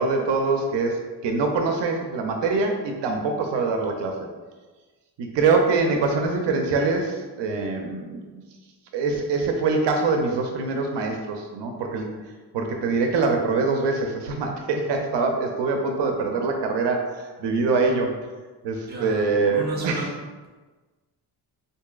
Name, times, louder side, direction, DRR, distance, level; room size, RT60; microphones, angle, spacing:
voice 1, 0.0-4.3 5.2-8.4 8.9-12.1 12.5-18.1 18.6-20.0, right 4 dB, 80° right, 3 dB, 0.6 m, -24 dB
voice 2, 18.9-20.1, right 1 dB, 25° right, -2 dB, 0.7 m, -33 dB
4.6 x 2.7 x 2.3 m, 1.3 s
wide cardioid pair, 140°, 42 cm